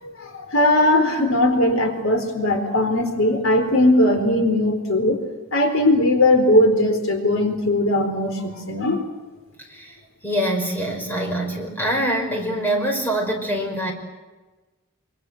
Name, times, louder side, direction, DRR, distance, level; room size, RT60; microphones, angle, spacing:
voice 1, 0.0-5.2 5.5-9.0, left 1 dB, 65° left, 5 dB, 4.2 m, -19 dB
voice 2, 10.2-13.9, right 1 dB, 10° left, 1 dB, 5.7 m, -24 dB
26.5 x 25.5 x 7.9 m, 1.2 s
head